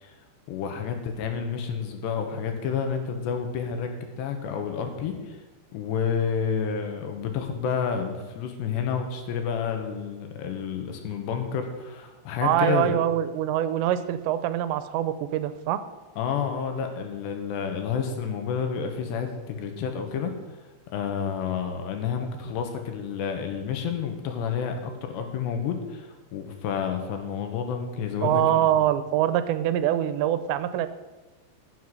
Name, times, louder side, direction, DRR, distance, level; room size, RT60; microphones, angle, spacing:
voice 1, 0.5-5.4 5.7-13.0 16.2-20.3 20.9-28.7, left 7 dB, 75° left, 5 dB, 3.5 m, -30 dB
voice 2, 12.4-15.8 28.2-30.9, right 11 dB, 85° right, 12 dB, 2.9 m, -24 dB
15.0 x 8.0 x 6.3 m, 1.2 s
omnidirectional pair, 5.1 m